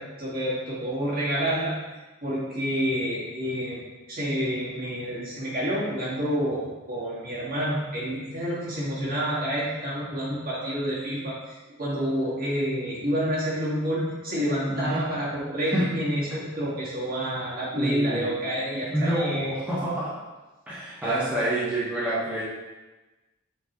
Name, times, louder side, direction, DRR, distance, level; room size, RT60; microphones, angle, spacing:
voice 1, 0.0-1.8 2.2-19.5 21.0-21.2, equal, 45° right, -7 dB, 2.1 m, -29 dB
voice 2, 14.7-15.0 15.7-15.9 17.7-18.4 18.9-20.1 20.7-22.4, right 1 dB, 5° right, -10 dB, 1.3 m, -27 dB
8.3 x 4.5 x 3.1 m, 1.2 s
head